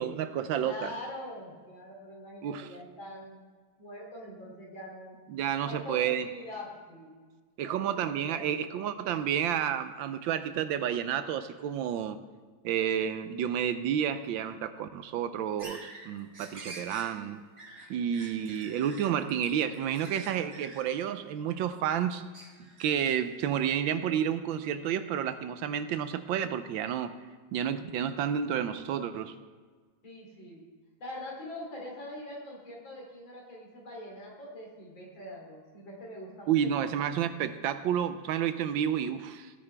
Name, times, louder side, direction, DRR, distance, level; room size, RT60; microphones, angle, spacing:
voice 1, 0.0-0.9 2.4-2.7 5.3-6.3 7.6-12.2 12.6-17.4 17.9-22.2 22.8-27.1 27.5-29.3 36.5-39.5, right 9 dB, 80° right, 11 dB, 1.3 m, -30 dB
voice 2, 0.6-3.4 3.8-5.2 5.6-7.1 7.6-8.5 30.0-30.6 31.0-36.6, left 1 dB, 70° left, -2 dB, 3.8 m, -43 dB
sound 1, 15.6-21.9 22.3-23.5, right 2 dB, 40° right, 2.3 m, -48 dB
17.0 x 9.6 x 3.4 m, 1.5 s
omnidirectional pair, 2.2 m